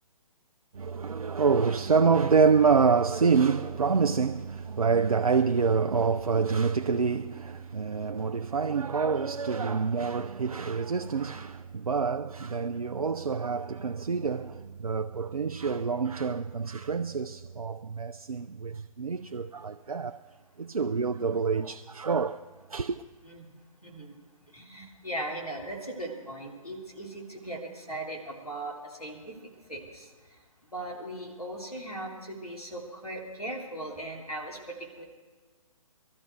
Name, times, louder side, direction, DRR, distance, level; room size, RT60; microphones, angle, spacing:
voice 1, 0.8-20.2 20.6-22.4 22.7-23.0, right 5 dB, 75° right, 0.5 m, -27 dB
voice 2, 23.8-24.1 24.5-29.3 29.7-30.0 30.7-34.6 35.0-35.1, right 1 dB, 90° left, 3.2 m, -38 dB
21.0 x 13.0 x 4.6 m
figure-of-eight pair, 135°, 19 cm